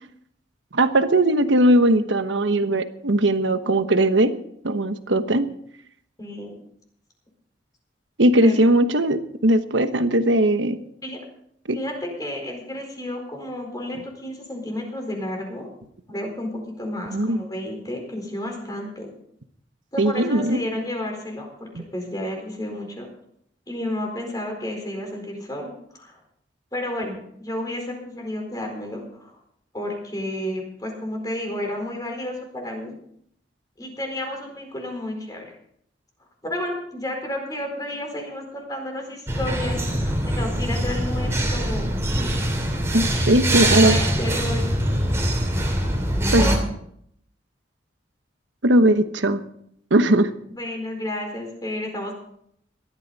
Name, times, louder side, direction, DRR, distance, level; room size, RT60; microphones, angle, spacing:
voice 1, 0.7-4.3 4.6-5.5 8.2-10.8 11.7-11.8 17.1-17.4 20.0-20.6 21.8-21.9 42.9-44.0 46.3-46.5 48.6-49.4 49.9-50.3, right 1 dB, 85° right, 10 dB, 1.1 m, -19 dB
voice 2, 6.2-6.5 8.4-8.6 11.0-11.2 11.7-15.7 16.1-19.1 19.9-23.1 23.7-26.2 26.7-29.4 29.7-32.9 33.8-35.5 36.4-42.3 43.5-44.9 46.4-46.6 50.6-52.1, left 1 dB, 20° left, 2 dB, 4.4 m, -31 dB
sound 1, 39.3-46.6, right 1 dB, 15° right, 3.1 m, -23 dB
18.5 x 13.0 x 4.1 m, 0.69 s
head